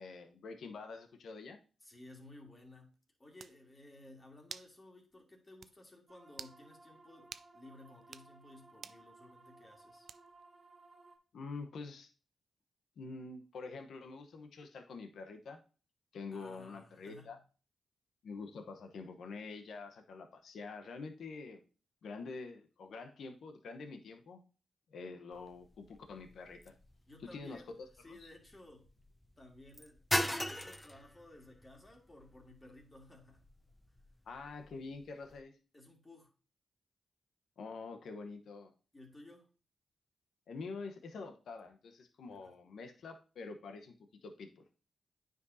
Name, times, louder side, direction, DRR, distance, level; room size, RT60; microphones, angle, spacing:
voice 1, 0.0-1.6 11.3-12.1 13.0-15.6 16.1-17.4 18.2-21.6 22.0-24.4 24.9-26.7 27.3-28.3 34.3-35.5 37.6-38.7 40.5-43.9 44.2-44.7, left 4 dB, 75° left, 6 dB, 1.0 m, -46 dB
voice 2, 1.8-2.9 3.2-10.1 16.3-17.3 27.1-28.9 29.4-33.4 35.7-36.3 38.9-39.5 42.3-42.5, left 2 dB, 30° left, 1 dB, 2.4 m, -56 dB
sound 1, 2.9-3.0 3.4-3.6 4.5-4.7 5.1-5.2 5.6-5.7 6.3-6.6 7.3-7.5 8.0-8.3 8.8-9.0 10.1-10.4, right 6 dB, 65° right, 0.3 m, -48 dB
sound 2, 6.1-11.2, right 2 dB, 35° right, 1.8 m, -60 dB
sound 3, 25.3-35.4, equal, 5° left, 0.7 m, -42 dB
9.3 x 5.2 x 2.7 m, 0.36 s
cardioid pair, 65°, 0 cm